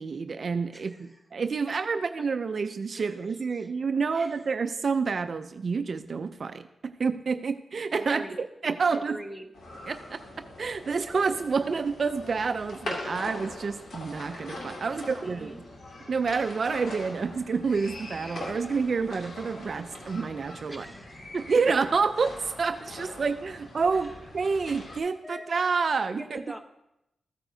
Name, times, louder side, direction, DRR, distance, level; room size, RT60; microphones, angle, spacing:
voice 1, 0.0-9.2 9.9-10.2 10.6-15.6 16.1-20.9 21.3-26.4, right 5 dB, 50° right, 9 dB, 0.4 m, -28 dB
voice 2, 0.7-1.2 1.7-2.0 2.9-3.2 3.5-4.4 8.0-8.4 8.9-9.5 13.1-13.2 14.8-15.6 18.5-18.6 20.7-21.2 23.9-24.1 25.2-25.6 26.1-26.6, equal, ahead, 6 dB, 0.9 m, -44 dB
sound 1, 9.5-25.0, left 1 dB, 80° left, 2.2 m, -42 dB
14.5 x 8.9 x 2.7 m, 0.86 s
wide cardioid pair, 130°, 0 cm